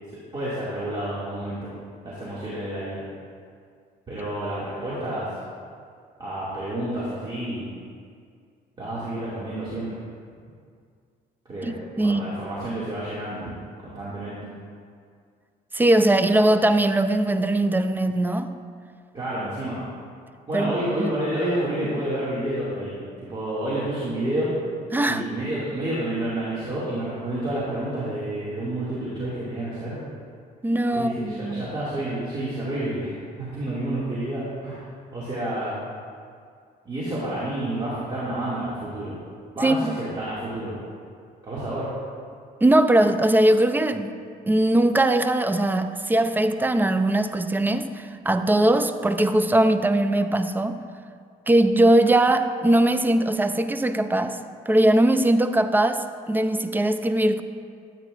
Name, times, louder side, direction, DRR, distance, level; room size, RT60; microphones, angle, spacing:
voice 1, 0.3-1.7 2.0-3.1 4.1-5.3 6.2-7.7 8.8-9.9 11.5-13.5 13.8-14.4 19.1-19.8 20.5-23.0 23.3-24.5 25.0-30.0 30.9-34.8 35.1-35.8 36.9-39.2 39.6-40.7 41.4-41.9, right 1 dB, 30° right, -9 dB, 2.1 m, -29 dB
voice 2, 11.6-12.2 15.7-18.5 20.5-21.1 24.9-25.3 30.6-31.7 39.6-39.9 42.6-44.2 44.5-50.8 51.5-54.4 54.7-57.4, right 1 dB, 10° right, 10 dB, 0.4 m, -20 dB
13.0 x 8.7 x 2.5 m, 2.2 s
cardioid pair, 110°, 17 cm